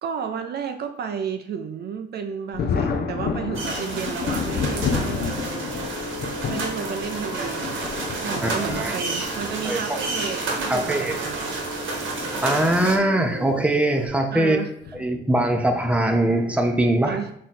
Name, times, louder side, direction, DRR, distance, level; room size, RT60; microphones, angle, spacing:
voice 1, 0.0-5.3 6.5-7.9 8.2-11.5 14.3-14.7 17.1-17.3, right 7 dB, 55° right, 7 dB, 0.4 m, -32 dB
Thunder, 2.5-9.6 10.6-10.7 12.2-12.4 12.8-12.9 14.8-15.1 15.8-16.1, left 5 dB, 55° left, 0.5 m, -30 dB
sound 1, 3.5-13.0, right 3 dB, 80° right, 1.1 m, -31 dB
sound 2, 4.5-14.1, equal, 75° left, 1.0 m, -36 dB
voice 2, 8.4-9.0 9.6-9.8 10.7-11.2 12.4-14.6 15.0-17.2, right 1 dB, 5° right, 4 dB, 0.7 m, -22 dB
3.8 x 3.1 x 4.2 m, 0.71 s
cardioid pair, 90°, 20 cm